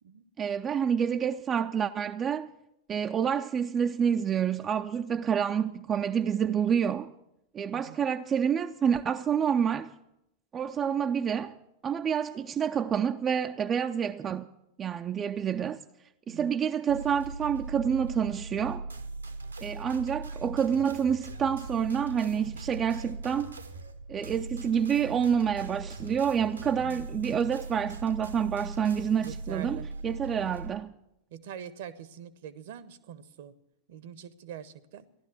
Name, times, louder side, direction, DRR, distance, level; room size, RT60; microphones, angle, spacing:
voice 1, 0.4-2.5 2.9-7.1 7.5-9.9 10.5-11.6 11.8-14.5 14.8-15.8 16.3-18.9 19.6-23.6 24.1-30.9, right 7 dB, 25° right, 0.5 m, -28 dB
voice 2, 16.3-16.6 26.7-27.1 29.1-29.9 31.3-33.5 33.9-35.1, right 9 dB, 55° right, 0.9 m, -44 dB
sound 1, 16.9-30.7, right 3 dB, 80° right, 1.1 m, -40 dB
14.5 x 12.0 x 7.1 m
figure-of-eight pair, 90°, 0 cm